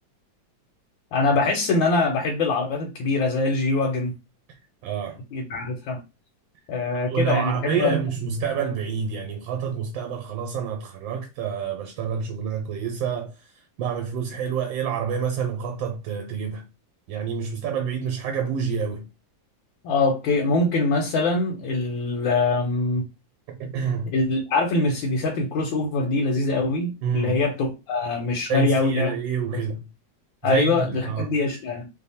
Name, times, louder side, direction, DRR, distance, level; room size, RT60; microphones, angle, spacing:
voice 1, 1.1-4.1 5.3-6.0 6.7-7.9 19.8-23.0 24.1-29.1 30.4-31.8, left 3 dB, 90° left, 1.5 m, -23 dB
voice 2, 4.8-5.2 6.9-13.5 13.8-16.6 17.1-19.1 23.6-24.1 27.0-27.4 28.5-29.9 30.4-31.3, right 7 dB, 90° right, 1.4 m, -28 dB
3.3 x 2.1 x 4.1 m
omnidirectional pair, 2.0 m